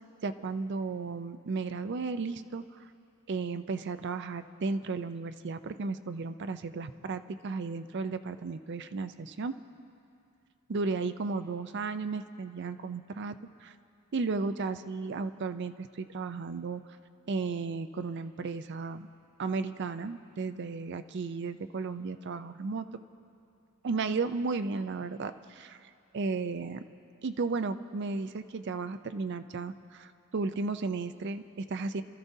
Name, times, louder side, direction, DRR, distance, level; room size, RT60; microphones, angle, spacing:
voice 1, 0.2-2.9 3.3-9.6 10.7-13.4 13.6-13.7 14.1-16.8 17.3-19.1 19.4-22.9 23.8-26.8 27.2-32.0, right 4 dB, 55° right, 10 dB, 0.5 m, -34 dB
27.0 x 13.0 x 2.7 m, 2.5 s
head